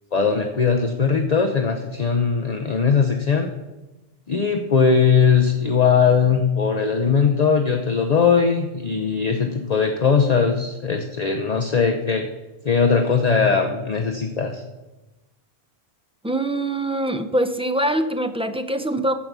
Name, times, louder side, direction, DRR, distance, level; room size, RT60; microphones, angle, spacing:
voice 1, 0.1-3.5 4.3-12.3 12.6-14.6, left 5 dB, 45° left, 4 dB, 0.8 m, -19 dB
voice 2, 16.2-19.2, right 1 dB, 10° right, 8 dB, 0.4 m, -23 dB
14.5 x 5.2 x 6.1 m, 1.1 s
omnidirectional pair, 1.1 m